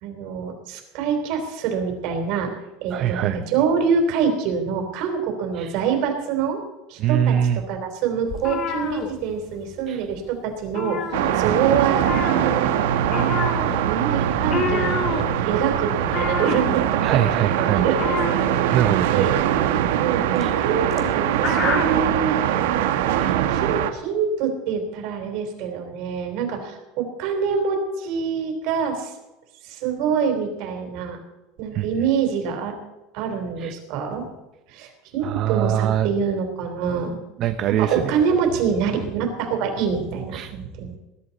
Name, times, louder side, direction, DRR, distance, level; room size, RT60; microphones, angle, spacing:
voice 1, 0.0-6.6 6.9-7.4 7.7-11.0 11.3-12.7 13.1-13.6 13.9-17.2 17.6-18.4 19.1-19.3 20.0-22.4 23.1-29.1 29.6-31.2 31.6-32.7 33.1-34.3 34.7-37.2 37.7-40.9, right 6 dB, 55° right, 4 dB, 3.6 m, -25 dB
voice 2, 2.9-3.4 5.5-5.7 7.0-7.6 9.9-10.0 17.0-17.9 18.7-19.4 20.4-20.5 23.2-23.4 31.7-31.9 33.6-33.7 35.2-36.1 37.4-38.1 40.3-40.5, right 10 dB, 40° right, 9 dB, 0.6 m, -23 dB
sound 1, 8.3-9.8 10.0-10.3 10.6-11.7 12.0-22.1, left 5 dB, 35° left, 1.8 m, -29 dB
sound 2, 11.1-23.9, right 10 dB, 90° right, 1.3 m, -22 dB
20.5 x 11.5 x 4.2 m, 1.0 s
supercardioid pair, 160°, 0 cm